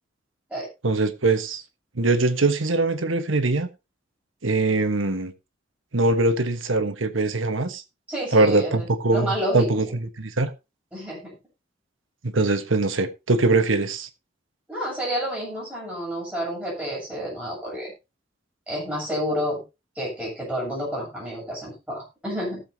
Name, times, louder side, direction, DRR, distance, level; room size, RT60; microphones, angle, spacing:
voice 1, 0.8-1.6 1.9-3.7 4.4-5.3 5.9-7.8 8.3-10.5 12.2-14.1, right 2 dB, 90° right, 1.3 m, -22 dB
voice 2, 8.1-10.0 10.9-11.4 14.7-17.9 18.7-19.6 20.0-22.6, equal, 5° right, 7.7 m, -30 dB
18.5 x 7.2 x 2.8 m
head